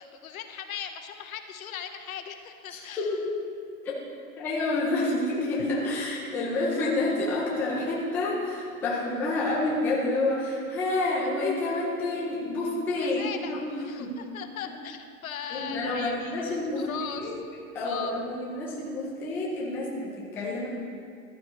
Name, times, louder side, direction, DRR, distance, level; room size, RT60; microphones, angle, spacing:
voice 1, 0.0-3.2 13.0-17.4 17.8-18.1, left 8 dB, 70° left, 7 dB, 1.1 m, -39 dB
voice 2, 2.7-3.3 4.4-13.2 13.5-13.7 14.0-14.2 15.5-17.3 17.7-20.7, left 2 dB, 5° left, -5 dB, 0.6 m, -29 dB
14.0 x 12.0 x 3.1 m, 2.3 s
hypercardioid pair, 165°, 44 cm